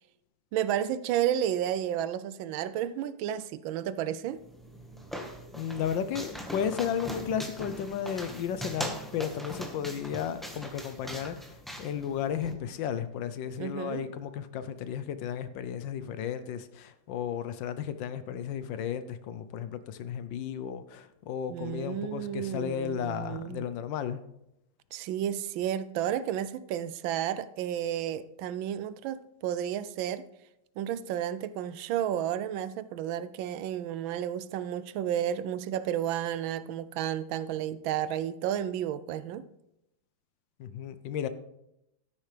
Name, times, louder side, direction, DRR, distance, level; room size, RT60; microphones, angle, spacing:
voice 1, 0.5-4.4 13.6-14.0 21.5-23.6 24.9-30.2 30.8-39.5, right 10 dB, 80° right, 1.3 m, -32 dB
sound 1, 4.4-12.5, equal, ahead, 0.9 m, -40 dB
voice 2, 5.5-24.2 40.6-41.3, left 8 dB, 75° left, 1.3 m, -34 dB
13.0 x 10.0 x 3.3 m
omnidirectional pair, 2.2 m